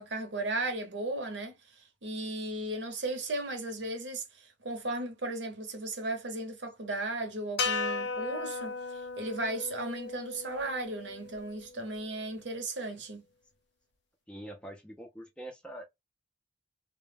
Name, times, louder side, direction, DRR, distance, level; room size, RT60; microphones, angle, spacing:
voice 1, 0.0-13.3, right 2 dB, 70° right, 0.8 m, -36 dB
sound 1, 7.6-11.9, left 4 dB, 65° left, 0.4 m, -36 dB
voice 2, 14.3-15.9, right 1 dB, 5° left, 0.4 m, -44 dB
2.1 x 2.1 x 3.2 m
head